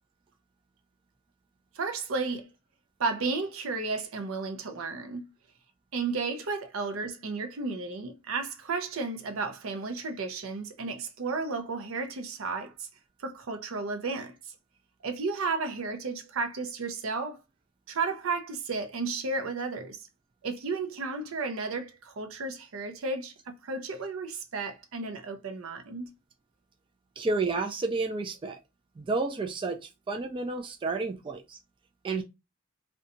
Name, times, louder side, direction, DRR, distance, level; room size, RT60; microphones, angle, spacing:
voice 1, 1.8-2.5 3.0-5.3 5.9-12.9 13.2-14.3 15.0-17.4 17.9-20.1 20.4-26.1, right 4 dB, 75° right, 0.5 m, -33 dB
voice 2, 27.2-28.6 29.0-31.6 32.0-32.2, right 3 dB, 25° right, 0.3 m, -31 dB
2.7 x 2.2 x 2.5 m
head